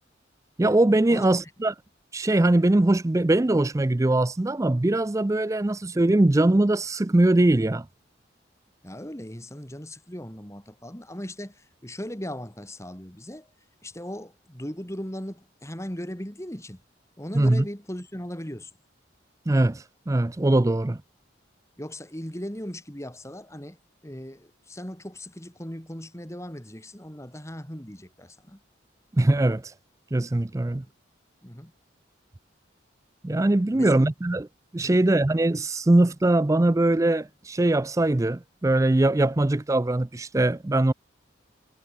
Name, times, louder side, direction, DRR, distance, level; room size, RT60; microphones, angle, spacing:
voice 1, 0.6-1.7 2.1-7.9 17.3-17.7 19.5-21.0 29.1-29.7 30.1-30.8 33.2-34.5 34.7-40.9, right 2 dB, 15° right, 0.4 m, -21 dB
voice 2, 8.8-13.5 13.8-16.8 17.2-18.7 21.8-23.8 24.0-28.6 30.6-30.9 31.4-31.7 33.7-34.0 34.8-35.0, equal, 15° left, 3.5 m, -38 dB
head